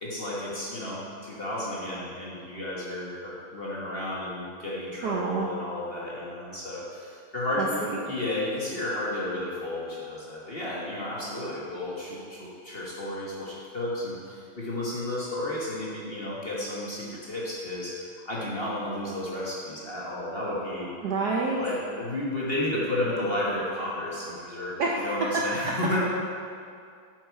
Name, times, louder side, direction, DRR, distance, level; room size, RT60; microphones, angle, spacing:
voice 1, 0.0-17.9 18.2-20.9 21.6-26.0, left 1 dB, 30° left, -6 dB, 1.3 m, -32 dB
voice 2, 5.0-5.5 7.6-8.0 21.0-21.6 24.8-25.1, right 4 dB, 65° right, -2 dB, 1.1 m, -28 dB
8.5 x 7.0 x 4.6 m, 2.3 s
omnidirectional pair, 2.4 m